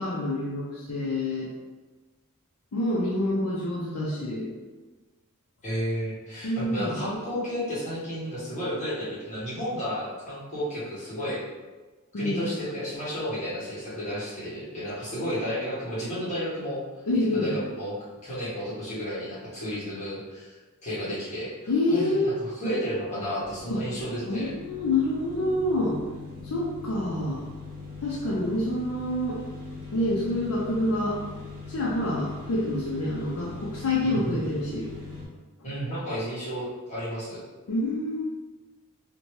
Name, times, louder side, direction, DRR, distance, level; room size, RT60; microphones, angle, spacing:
voice 1, 0.0-1.5 2.7-4.5 6.4-7.0 12.1-12.5 17.1-17.5 21.7-22.3 23.7-23.8 24.2-26.0 26.4-27.4 28.0-29.4 29.9-31.2 31.7-34.9 37.7-38.2, left 1 dB, 70° left, -5 dB, 0.4 m, -27 dB
voice 2, 5.6-11.4 12.1-16.8 17.3-18.0 18.2-21.5 21.9-24.5 34.0-34.5 35.6-37.4, equal, 30° left, -9 dB, 1.2 m, -32 dB
sound 1, 23.4-35.2, left 4 dB, 40° right, 0.7 m, -41 dB
2.7 x 2.1 x 3.1 m, 1.3 s
head